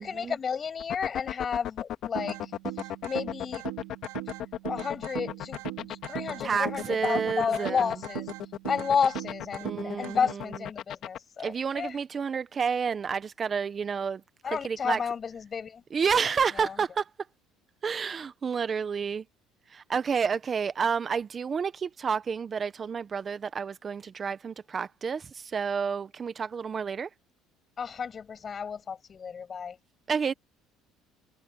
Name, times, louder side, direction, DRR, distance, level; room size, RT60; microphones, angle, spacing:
voice 1, 0.0-3.7 4.6-8.3 8.7-12.0 14.4-15.8 16.5-16.8 27.8-29.8, left 6 dB, 35° left, 6.0 m, -32 dB
sound 1, 0.8-11.2, left 11 dB, 60° left, 2.0 m, -35 dB
sound 2, 2.2-10.2, right 20 dB, 90° right, 2.0 m, -40 dB
voice 2, 6.4-7.8 9.6-10.3 11.4-14.2 14.5-15.0 15.9-17.1 17.8-19.2 19.7-27.1 30.1-30.3, right 6 dB, 30° right, 0.9 m, -30 dB
cardioid pair, 105°, 0 cm